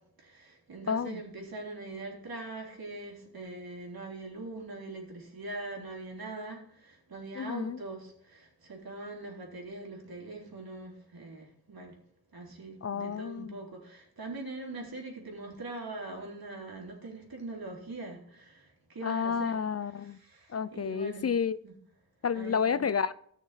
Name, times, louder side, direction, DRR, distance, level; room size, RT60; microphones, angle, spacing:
voice 1, 0.2-11.9 12.3-19.6 19.9-21.3 21.6-21.7 22.3-22.8, right 2 dB, 65° right, -1 dB, 3.5 m, -42 dB
voice 2, 0.9-1.2 7.4-7.8 12.8-13.6 19.0-20.2 20.5-21.6 22.2-23.1, left 6 dB, 40° left, 16 dB, 0.4 m, -30 dB
14.5 x 6.4 x 4.1 m, 0.68 s
cardioid pair, 60°, 38 cm